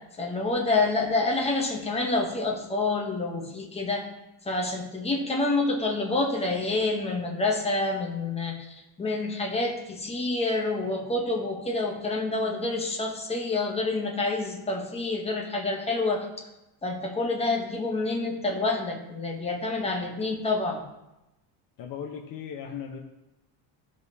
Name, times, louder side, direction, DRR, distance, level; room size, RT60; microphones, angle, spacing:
voice 1, 0.2-4.1 4.4-8.6 9.0-16.3 16.8-20.8, left 3 dB, 15° left, 1 dB, 0.8 m, -28 dB
voice 2, 21.8-23.0, left 7 dB, 50° left, 1 dB, 0.8 m, -37 dB
13.5 x 5.2 x 2.7 m, 0.94 s
cardioid pair, 175°, 45 cm